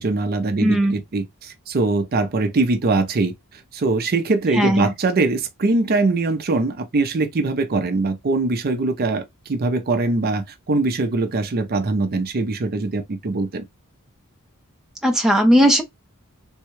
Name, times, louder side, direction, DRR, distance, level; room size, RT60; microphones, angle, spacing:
voice 1, 0.0-3.3 3.7-13.6, right 3 dB, 45° right, 0.5 m, -22 dB
voice 2, 0.6-0.9 4.5-4.9 15.0-15.8, equal, ahead, 0.6 m, -17 dB
3.5 x 2.2 x 3.0 m
head